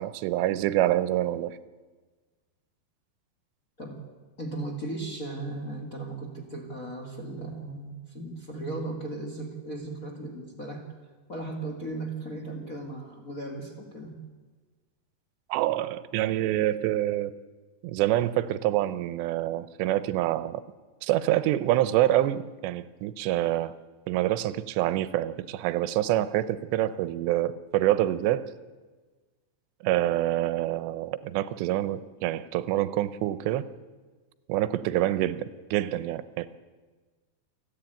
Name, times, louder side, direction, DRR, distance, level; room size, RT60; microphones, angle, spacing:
voice 1, 0.0-1.6 15.5-17.3 17.8-20.6 21.0-23.7 24.1-28.5 29.8-33.7 34.5-36.6, right 14 dB, 85° right, 15 dB, 3.0 m, -26 dB
voice 2, 3.8-4.1 4.4-10.8 11.3-14.1, right 2 dB, 40° left, 1 dB, 1.1 m, -36 dB
28.5 x 10.5 x 9.0 m, 1.4 s
omnidirectional pair, 4.9 m